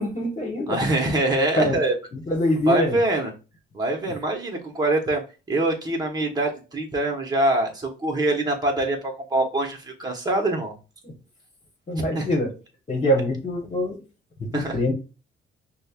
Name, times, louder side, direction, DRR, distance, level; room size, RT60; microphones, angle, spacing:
voice 1, 0.0-0.8 1.6-1.7 2.1-3.0 4.0-4.1 11.0-11.1 11.9-12.5 12.9-14.0 14.4-14.9, equal, 35° left, 1.3 m, -24 dB
voice 2, 0.7-1.9 2.7-3.3 3.7-5.2 5.5-10.7 12.1-12.3 14.5-14.8, right 2 dB, 20° right, 1.1 m, -24 dB
5.1 x 2.2 x 2.4 m
cardioid pair, 90°, 20 cm